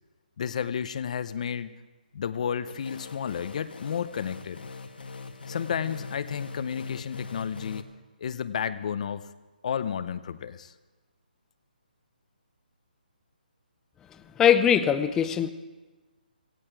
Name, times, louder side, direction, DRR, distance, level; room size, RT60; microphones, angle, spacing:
voice 1, 0.4-1.8 2.1-4.6 5.5-7.9 8.2-9.3 9.6-10.7, left 7 dB, 45° left, 14 dB, 0.7 m, -32 dB
sound 1, 2.7-7.8, left 4 dB, 80° left, 1.5 m, -41 dB
voice 2, 14.4-15.5, left 9 dB, 10° left, 11 dB, 0.5 m, -21 dB
18.0 x 16.0 x 4.7 m, 1.2 s
hypercardioid pair, 160°, 5 cm